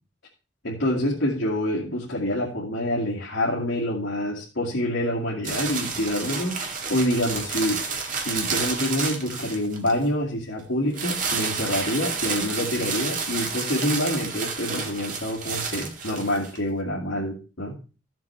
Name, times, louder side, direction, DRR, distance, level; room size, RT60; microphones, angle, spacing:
voice 1, 0.6-6.6 6.9-7.8 8.2-17.8, left 1 dB, 80° left, -4 dB, 2.2 m, -26 dB
sound 1, 5.4-10.0 10.9-16.6, right 5 dB, 45° right, 1.9 m, -30 dB
14.0 x 7.6 x 3.4 m, 0.34 s
head